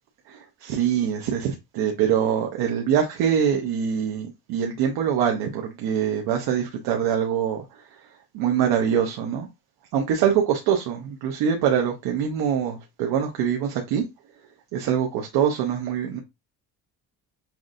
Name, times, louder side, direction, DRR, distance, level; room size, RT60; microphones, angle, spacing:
voice 1, 0.3-8.0 8.3-9.5 9.9-14.0 14.7-16.2, right 8 dB, 85° right, 0.8 m, -24 dB
5.8 x 2.5 x 2.5 m
cardioid pair, 165°, 37 cm